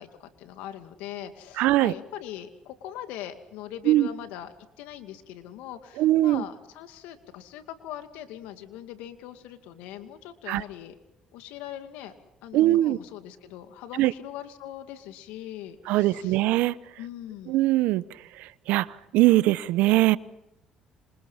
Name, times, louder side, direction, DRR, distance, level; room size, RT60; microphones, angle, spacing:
voice 1, 0.0-10.9 11.3-12.1 12.4-16.4 17.0-17.6, left 11 dB, 80° left, 8 dB, 2.4 m, -41 dB
voice 2, 1.6-1.9 3.9-4.1 6.0-6.4 10.5-10.6 12.5-13.0 14.0-14.1 15.9-16.7 17.5-18.0 18.7-18.9 19.1-20.2, right 16 dB, 75° right, 18 dB, 0.8 m, -21 dB
27.5 x 26.5 x 5.7 m, 0.86 s
supercardioid pair, 65°, 3 cm